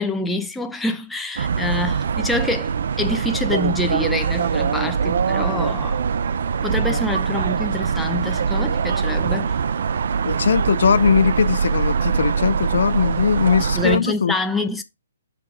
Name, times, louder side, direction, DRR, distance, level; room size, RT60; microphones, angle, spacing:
voice 1, 0.0-6.0 6.6-9.6 13.7-14.8, left 2 dB, 5° left, 0.5 m, -26 dB
sound 1, 1.4-14.1, right 1 dB, 15° right, 3.9 m, -44 dB
sound 2, 1.4-14.0, right 6 dB, 55° right, 0.4 m, -22 dB
voice 2, 10.2-14.3, left 6 dB, 65° left, 0.4 m, -20 dB
5.9 x 5.5 x 3.6 m
hypercardioid pair, 170°, 0 cm